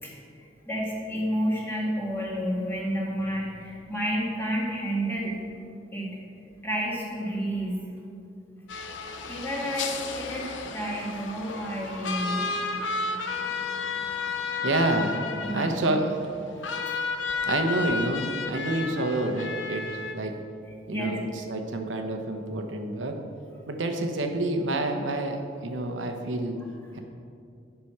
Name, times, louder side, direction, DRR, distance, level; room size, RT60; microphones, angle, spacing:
voice 1, 0.7-5.4 5.9-6.1 6.6-7.8 9.3-12.4 15.2-15.9 16.6-16.9 20.9-21.1, equal, 10° left, -5 dB, 1.8 m, -30 dB
sound 1, 8.7-20.1, left 4 dB, 75° left, 0.7 m, -32 dB
voice 2, 14.6-15.2 15.4-16.1 17.4-20.3 20.9-23.2 23.7-26.6 26.9-27.0, right 2 dB, 80° right, 4 dB, 0.9 m, -28 dB
10.0 x 6.0 x 4.7 m, 2.5 s
head